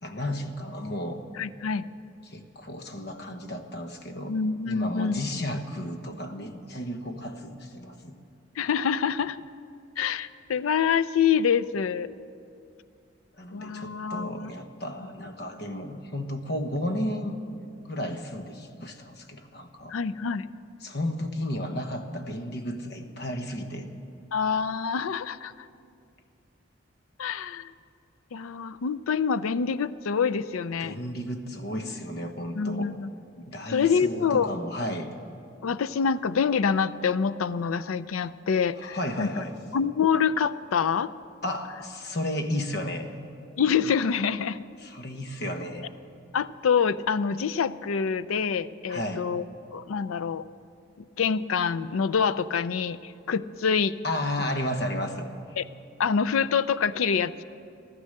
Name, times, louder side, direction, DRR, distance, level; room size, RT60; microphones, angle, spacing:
voice 1, 0.0-1.2 2.3-4.3 4.7-8.2 13.4-17.4 17.8-20.0 20.8-23.9 30.8-32.9 33.5-35.1 38.8-39.5 41.4-43.1 44.8-45.9 48.9-49.3 54.0-55.3, left 1 dB, 50° left, 6 dB, 1.1 m, -33 dB
voice 2, 1.4-1.9 4.3-5.2 8.6-9.4 10.0-12.1 13.5-14.5 19.9-20.5 24.3-25.7 27.2-27.7 28.3-31.0 32.5-33.1 33.7-34.5 35.6-39.3 39.7-41.1 43.6-44.6 46.3-49.4 49.7-50.5 51.2-54.0 55.6-55.7 56.0-57.4, left 6 dB, 90° left, 15 dB, 0.4 m, -26 dB
14.0 x 13.0 x 6.5 m, 2.5 s
head